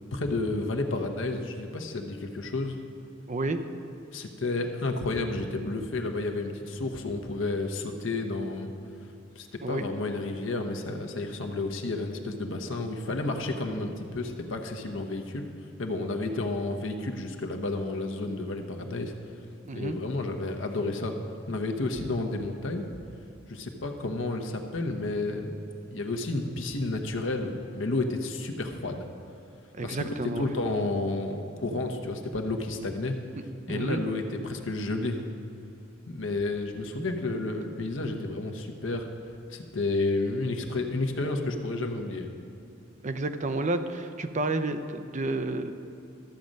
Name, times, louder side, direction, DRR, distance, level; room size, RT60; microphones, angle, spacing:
voice 1, 0.1-2.8 4.1-8.7 9.4-15.5 15.8-19.1 19.7-21.1 21.5-22.9 23.5-25.6 25.9-29.1 29.8-30.0 30.4-33.2 33.7-35.3 36.1-39.1 39.5-42.3, left 2 dB, 75° left, 4 dB, 1.0 m, -31 dB
voice 2, 3.3-3.6 9.6-9.9 19.6-20.0 29.7-30.5 33.7-34.0 43.0-45.7, right 2 dB, 40° right, 9 dB, 0.5 m, -30 dB
13.0 x 7.5 x 5.3 m, 2.5 s
head